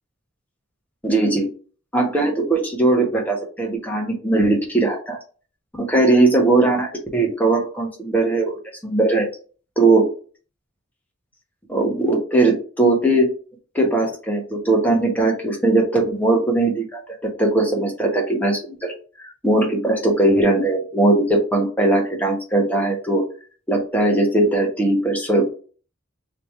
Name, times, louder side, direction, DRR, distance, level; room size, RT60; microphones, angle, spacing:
voice 1, 1.0-1.5 1.9-5.2 5.7-9.3 9.8-10.1 11.7-13.3 13.7-17.0 17.4-18.9 19.2-23.2 23.7-25.4, right 2 dB, 10° left, 0 dB, 1.0 m, -19 dB
3.2 x 2.9 x 4.4 m, 0.39 s
head